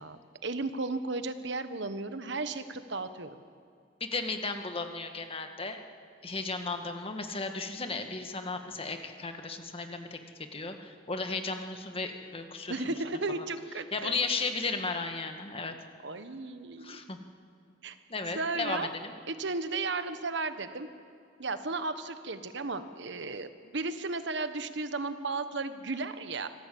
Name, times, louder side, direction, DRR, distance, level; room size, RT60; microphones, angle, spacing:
voice 1, 0.0-3.4 12.7-14.1 16.0-17.0 17.8-18.0 18.3-18.9 19.3-20.9 21.4-26.5, right 3 dB, 65° right, 10 dB, 1.3 m, -34 dB
voice 2, 4.0-5.8 6.2-10.2 10.5-12.8 13.3-13.4 13.9-15.7 16.8-17.2 18.1-19.1, left 3 dB, 30° left, 6 dB, 1.8 m, -35 dB
26.0 x 18.0 x 8.6 m, 2.4 s
head